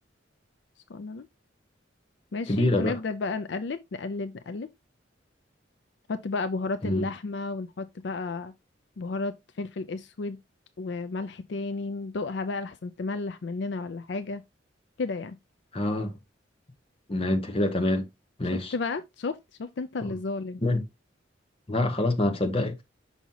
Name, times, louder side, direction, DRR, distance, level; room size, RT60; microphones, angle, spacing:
voice 1, 0.9-1.3 2.3-4.7 6.1-8.5 9.0-10.4 10.8-14.4 15.0-15.4 18.7-20.6, left 3 dB, 65° left, 0.5 m, -32 dB
voice 2, 2.5-3.0 6.8-7.1 15.7-16.2 17.1-18.1 18.4-18.7 20.0-20.2 20.6-20.8 21.7-22.8, left 1 dB, 30° left, 1.1 m, -26 dB
6.0 x 5.5 x 2.8 m
head